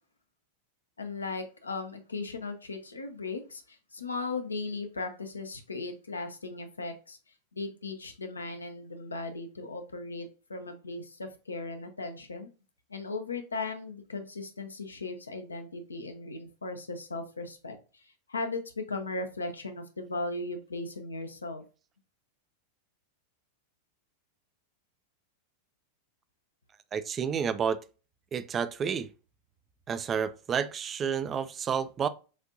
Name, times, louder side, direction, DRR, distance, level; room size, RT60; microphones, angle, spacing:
voice 1, 1.0-7.2 7.5-12.5 12.9-18.0 18.3-21.6, left 3 dB, 75° left, 0.7 m, -37 dB
voice 2, 26.9-27.8 28.3-29.1 29.9-32.1, right 7 dB, 25° right, 0.4 m, -30 dB
6.3 x 2.6 x 2.5 m
figure-of-eight pair, 90°, 0 cm